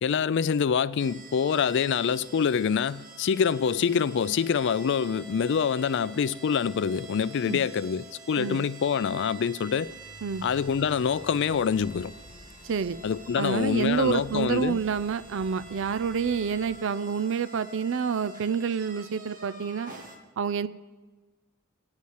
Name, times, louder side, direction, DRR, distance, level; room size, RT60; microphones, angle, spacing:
voice 1, 0.0-9.9 10.4-12.1 13.0-14.8, left 6 dB, 60° left, 0.4 m, -26 dB
sound 1, 1.0-20.2, right 3 dB, 40° right, 1.8 m, -48 dB
sound 2, 9.8-16.9, equal, 45° left, 2.2 m, -50 dB
voice 2, 12.6-13.0 13.4-19.9 20.4-20.7, right 6 dB, 65° right, 0.5 m, -28 dB
9.1 x 8.4 x 8.1 m
head